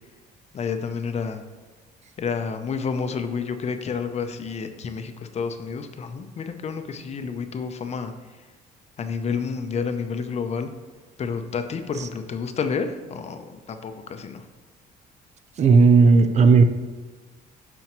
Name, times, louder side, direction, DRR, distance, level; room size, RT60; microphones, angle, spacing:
voice 1, 0.5-1.4 2.2-8.1 9.0-10.7 11.2-14.4, left 5 dB, 40° left, 7 dB, 0.7 m, -29 dB
voice 2, 15.6-16.6, right 4 dB, 40° right, 9 dB, 0.6 m, -14 dB
11.5 x 4.4 x 3.0 m, 1.4 s
cardioid pair, 110°, 17 cm